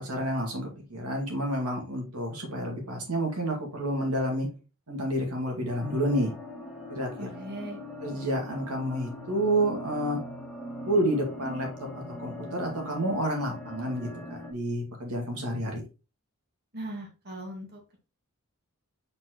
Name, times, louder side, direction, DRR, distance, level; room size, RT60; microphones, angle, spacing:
voice 1, 0.0-4.5 4.9-6.3 6.9-7.3 8.0-10.2 10.9-15.8, right 1 dB, 85° right, 1 dB, 2.1 m, -29 dB
sound 1, 5.7-14.5, left 1 dB, ahead, 1.5 m, -41 dB
voice 2, 7.2-7.8 16.7-18.0, right 1 dB, 45° right, 0 dB, 1.7 m, -39 dB
7.5 x 4.3 x 3.0 m, 0.31 s
head